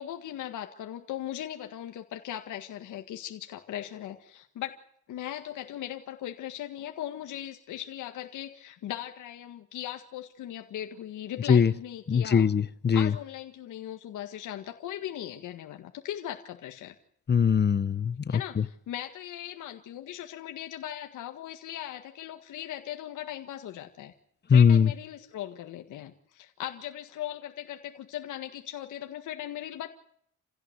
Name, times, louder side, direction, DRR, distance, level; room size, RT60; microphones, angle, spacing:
voice 1, 0.0-4.8 5.1-12.5 12.9-16.9 18.3-24.1 24.5-29.9, left 12 dB, 80° left, 5 dB, 1.8 m, -39 dB
voice 2, 12.1-13.1 17.3-18.1 24.5-24.9, left 7 dB, 35° left, 17 dB, 1.0 m, -21 dB
28.0 x 16.0 x 8.1 m, 0.70 s
cardioid pair, 90°, 30 cm